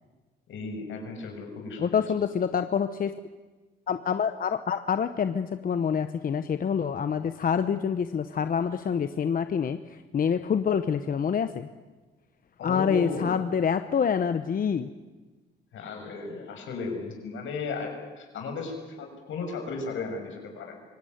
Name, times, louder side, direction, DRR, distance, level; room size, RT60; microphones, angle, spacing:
voice 1, 0.5-2.2 12.6-13.3 15.7-20.8, left 4 dB, 75° left, 3 dB, 6.4 m, -35 dB
voice 2, 1.8-3.1 3.9-11.7 12.6-14.9, left 7 dB, 45° left, 10 dB, 0.9 m, -26 dB
24.5 x 18.0 x 9.4 m, 1.3 s
cardioid pair, 90°, 20 cm